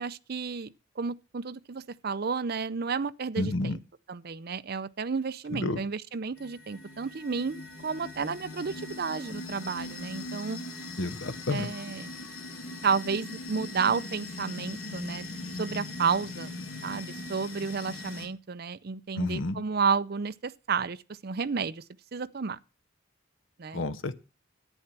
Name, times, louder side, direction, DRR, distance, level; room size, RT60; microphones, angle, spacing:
voice 1, 0.0-3.8 4.1-10.6 11.5-12.1 12.8-16.5 16.8-21.8 22.1-22.6 23.6-23.8, right 5 dB, 50° right, 0.5 m, -32 dB
voice 2, 3.4-3.8 5.5-5.8 11.0-11.7 19.2-19.6 23.7-24.2, left 2 dB, 65° left, 0.8 m, -30 dB
sound 1, 6.4-18.3, left 2 dB, 85° left, 3.1 m, -40 dB
11.0 x 9.0 x 5.9 m
head